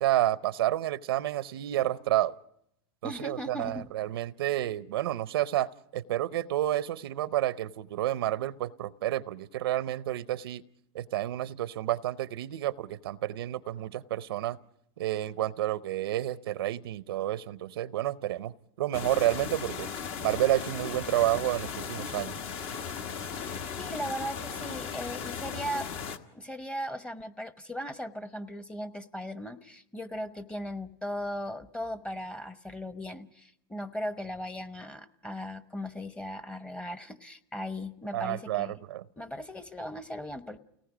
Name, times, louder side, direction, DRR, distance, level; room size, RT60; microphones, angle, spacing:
voice 1, 0.0-2.3 3.0-10.6 10.9-14.6 15.0-19.9 20.2-22.3 38.1-39.0, right 14 dB, 90° right, 16 dB, 0.7 m, -30 dB
voice 2, 3.0-3.9 22.4-22.5 23.4-25.9 26.3-38.8 39.2-40.6, equal, 10° left, 11 dB, 0.9 m, -38 dB
sound 1, 18.9-26.2, left 6 dB, 50° left, 1.4 m, -37 dB
29.5 x 18.5 x 5.0 m, 0.76 s
supercardioid pair, 125°, 12 cm